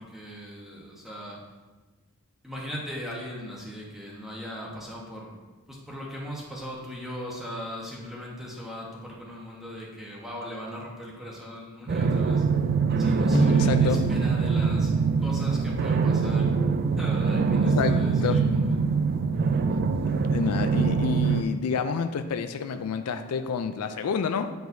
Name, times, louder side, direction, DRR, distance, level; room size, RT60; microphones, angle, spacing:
voice 1, 0.0-1.4 2.4-5.4 5.7-12.4 13.0-14.9 15.2-16.5 17.0-18.6, equal, ahead, -4 dB, 1.1 m, -39 dB
sound 1, 11.9-21.4, right 5 dB, 45° right, 0.3 m, -23 dB
voice 2, 13.3-14.0 17.7-18.4 20.3-24.5, left 5 dB, 90° left, 9 dB, 0.4 m, -28 dB
9.1 x 4.6 x 2.7 m, 1.3 s
head